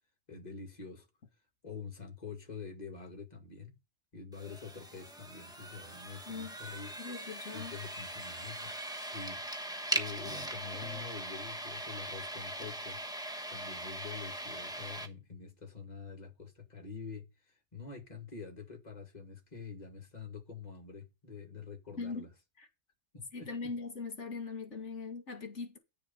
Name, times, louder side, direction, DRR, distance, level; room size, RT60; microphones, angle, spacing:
voice 1, 0.3-1.1 1.6-3.7 4.1-7.0 7.5-13.0 13.5-22.3 23.1-23.7, left 5 dB, 35° left, 2.4 m, -46 dB
sound 1, 4.3-15.1, right 1 dB, 5° right, 1.2 m, -40 dB
voice 2, 7.0-7.7 22.0-22.2 22.6-22.7 23.3-25.8, left 4 dB, 75° left, 2.2 m, -40 dB
10.5 x 6.8 x 5.6 m
omnidirectional pair, 1.2 m